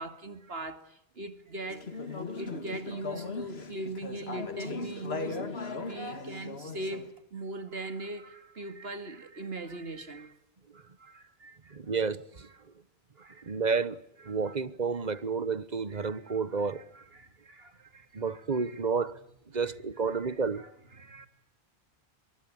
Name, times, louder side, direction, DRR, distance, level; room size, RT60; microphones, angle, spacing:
voice 1, 0.0-5.4 5.8-10.4 10.7-12.0 12.6-12.7 13.2-13.6 14.3-14.6 15.9-18.8 19.6-19.7 20.1-21.3, right 2 dB, 70° right, 2.5 m, -41 dB
Conversation / Chatter, 1.7-7.1, left 3 dB, 75° left, 2.2 m, -38 dB
voice 2, 11.7-12.5 13.4-16.8 18.1-19.2 19.5-20.6, right 5 dB, 45° right, 1.2 m, -31 dB
24.0 x 23.0 x 8.6 m
omnidirectional pair, 1.1 m